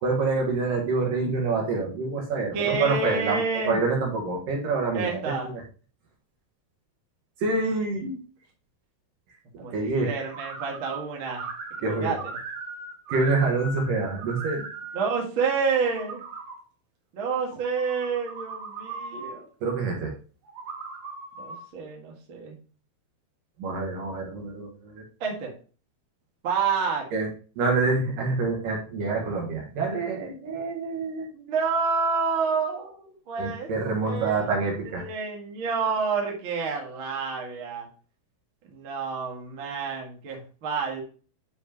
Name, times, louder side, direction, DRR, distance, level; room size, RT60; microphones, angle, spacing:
voice 1, 0.0-5.6 7.4-8.2 9.5-10.1 11.8-12.1 13.1-14.7 19.6-20.1 23.6-25.0 27.1-27.3 27.6-31.3 33.4-35.0, right 3 dB, 65° right, 0 dB, 2.9 m, -27 dB
voice 2, 2.5-3.8 4.9-5.5 9.6-11.5 11.8-12.2 14.9-16.2 17.1-19.5 21.4-22.6 25.2-25.5 26.4-27.1 31.3-33.7 34.1-34.4 34.9-37.9 38.7-41.0, right 5 dB, 45° right, -1 dB, 1.9 m, -29 dB
sound 1, 10.3-11.0 11.3-13.9 14.2-15.0 15.6-16.6 17.5-19.3 20.4-21.6, right 4 dB, 85° right, 3.6 m, -38 dB
10.0 x 4.7 x 2.9 m, 0.38 s
omnidirectional pair, 4.6 m